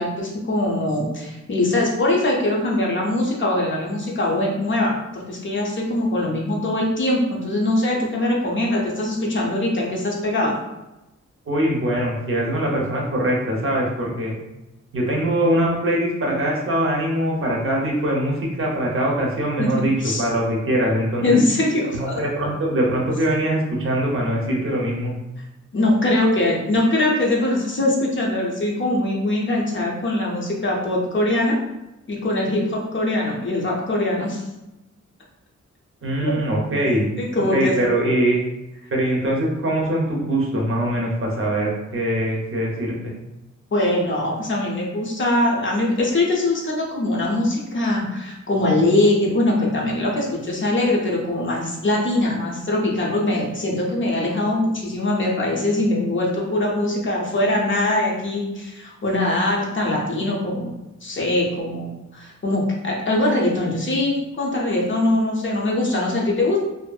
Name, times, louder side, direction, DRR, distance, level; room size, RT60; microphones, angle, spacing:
voice 1, 0.0-10.6 19.6-19.7 20.0-20.2 21.2-22.2 25.7-31.6 32.1-34.4 36.2-36.4 37.2-37.7 43.7-60.7 61.0-66.6, left 1 dB, 40° left, -2 dB, 0.5 m, -22 dB
voice 2, 11.5-14.4 14.9-21.4 21.9-25.1 36.0-37.1 37.4-38.4 38.9-43.1, right 1 dB, 45° right, -2 dB, 0.6 m, -22 dB
2.6 x 2.4 x 2.2 m, 0.98 s
wide cardioid pair, 160°, 29 cm